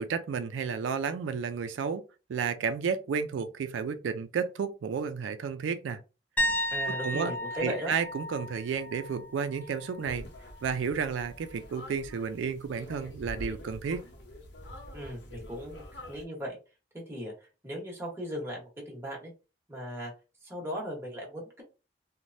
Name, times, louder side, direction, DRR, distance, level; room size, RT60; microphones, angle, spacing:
voice 1, 0.0-2.0 2.3-6.0 6.5-7.3 7.6-10.3 10.6-14.0, right 6 dB, 90° right, 0.3 m, -32 dB
sound 1, 6.4-10.1 10.4-10.8 13.7-13.8, equal, 10° left, 0.4 m, -34 dB
voice 2, 6.7-7.9 14.9-15.8 16.1-16.6 16.9-19.3 19.7-20.1 20.4-21.6, equal, 15° right, 1.1 m, -37 dB
sound 2, 10.0-16.2, left 1 dB, 65° left, 0.7 m, -46 dB
3.1 x 2.1 x 2.6 m
head